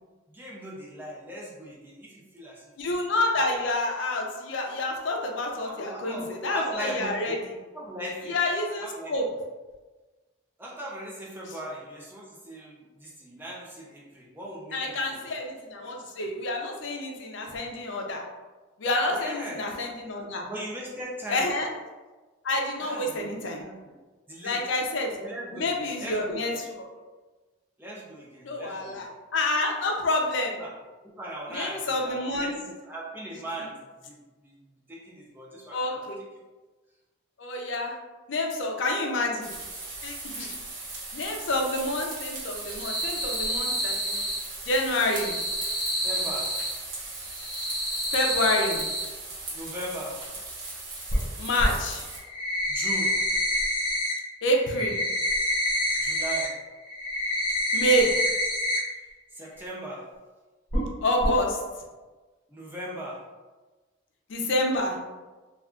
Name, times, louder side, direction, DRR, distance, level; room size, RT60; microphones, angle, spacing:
voice 1, 0.3-2.6 5.6-7.4 7.7-8.4 8.8-9.1 10.6-15.2 19.2-19.6 20.5-21.5 22.8-23.3 23.6-23.9 24.3-24.6 25.2-26.6 27.8-29.1 30.5-30.7 31.0-33.7 34.0-34.2 34.4-34.5 34.9-36.1 40.3-40.6 46.0-46.5 49.5-50.2 52.7-53.2 56.0-56.6 59.3-60.1 62.5-63.2, right 1 dB, 10° right, -3 dB, 0.4 m, -38 dB
voice 2, 2.8-7.6 8.3-9.3 14.7-18.2 18.8-20.5 21.3-21.7 22.4-23.6 24.4-25.2 25.5-26.5 28.4-30.6 31.5-32.5 35.7-36.2 37.4-38.0 38.3-39.5 40.0-40.6 41.1-44.3 44.6-45.4 48.1-48.8 51.4-52.0 54.4-55.0 57.7-58.1 61.0-61.6 64.3-65.0, left 1 dB, 65° left, 1 dB, 0.5 m, -28 dB
sound 1, 39.4-52.2, right 2 dB, 70° right, 1.0 m, -38 dB
sound 2, 42.6-44.4 44.9-46.7 47.3-49.0 51.1-51.2 51.6-51.7 52.1-54.1 54.4-56.5 56.8-58.8 59.1-59.2 59.6-59.7 60.7-60.9 61.2-61.3, equal, 25° left, 1.0 m, -28 dB
2.4 x 2.3 x 3.6 m, 1.2 s
head